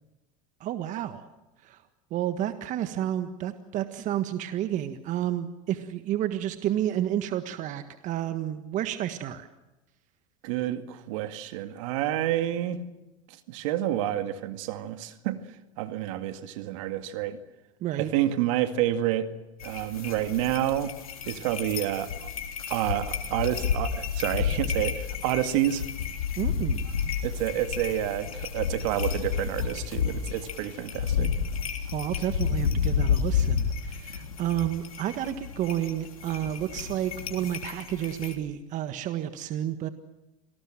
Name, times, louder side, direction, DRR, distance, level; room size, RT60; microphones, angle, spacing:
voice 1, 0.6-1.2 1.6-1.8 2.1-9.5 17.8-18.1 26.4-26.8 31.9-39.9, right 11 dB, 45° right, 9 dB, 1.6 m, -30 dB
voice 2, 10.4-12.8 13.3-15.4 15.8-17.4 17.9-19.3 19.6-20.9 21.3-22.3 22.7-25.8 27.2-31.3, right 12 dB, 65° right, 8 dB, 2.1 m, -29 dB
sound 1, 19.6-38.3, left 7 dB, 90° left, 3.3 m, -31 dB
27.0 x 19.5 x 7.6 m, 0.99 s
hypercardioid pair, 95°, 18 cm